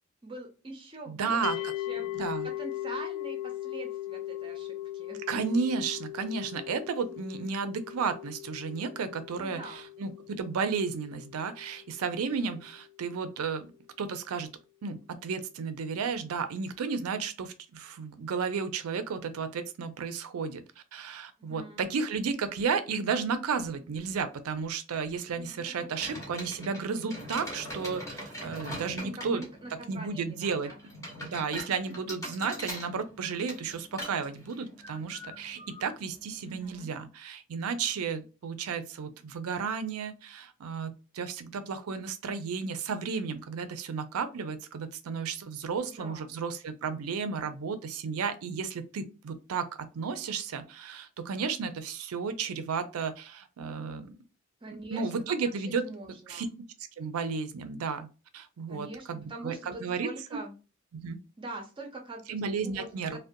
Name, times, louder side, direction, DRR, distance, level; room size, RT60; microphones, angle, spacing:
voice 1, 0.2-5.2 9.4-9.9 21.4-21.8 25.4-25.9 29.0-30.8 31.9-32.0 36.4-36.9 45.7-46.3 54.6-55.1 55.6-56.5 58.7-60.6 61.4-63.2, right 2 dB, 25° right, 2 dB, 0.5 m, -44 dB
voice 2, 1.1-1.7 2.1-2.5 5.3-13.7 14.0-14.5 14.8-20.6 20.9-29.4 29.9-30.7 31.2-54.1 54.9-55.8 56.3-56.5 57.0-58.1 58.3-60.4 60.9-61.2 62.3-63.2, right 5 dB, 90° right, 10 dB, 0.4 m, -33 dB
sound 1, 1.4-12.6, left 14 dB, 75° left, 0.3 m, -39 dB
sound 2, 26.0-36.9, equal, 15° left, 0.8 m, -42 dB
2.5 x 2.1 x 2.6 m, 0.32 s
head